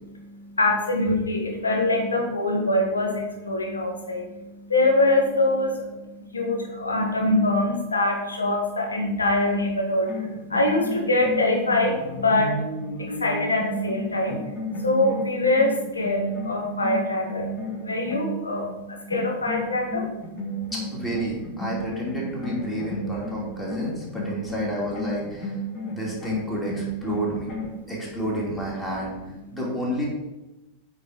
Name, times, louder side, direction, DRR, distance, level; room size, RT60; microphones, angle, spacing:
voice 1, 0.1-20.7 25.7-26.0 27.8-27.9, left 2 dB, 75° left, 2 dB, 1.4 m, -24 dB
sound 1, 10.1-18.8 19.1-27.8, equal, 35° left, 1.8 m, -33 dB
voice 2, 20.7-25.5 25.9-27.5 27.9-29.1 29.5-30.1, equal, 10° left, -4 dB, 2.7 m, -30 dB
8.6 x 4.8 x 5.2 m, 1.0 s
figure-of-eight pair, 90°, 0 cm